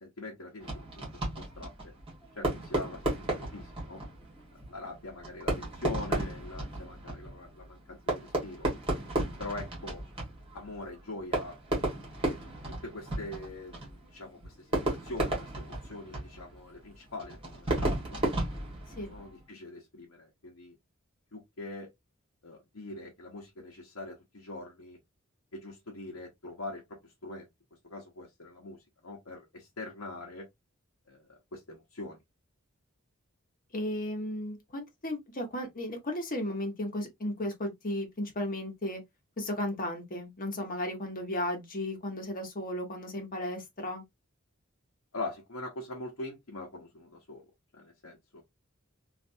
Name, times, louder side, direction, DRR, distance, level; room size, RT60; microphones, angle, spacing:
voice 1, 0.0-0.9 1.2-1.9 2.4-4.0 4.7-8.7 9.4-10.0 10.5-11.6 12.3-12.4 12.8-18.2 19.1-20.8 21.3-21.9 22.4-25.0 25.5-27.5 27.8-30.5 31.1-32.2 45.1-47.4 47.7-48.4, left 2 dB, 75° left, 0.9 m, -43 dB
Fireworks, 0.6-19.4, right 1 dB, 25° right, 1.6 m, -34 dB
voice 2, 33.7-39.0 39.4-44.0, left 1 dB, 40° left, 1.1 m, -35 dB
3.2 x 2.6 x 2.6 m
head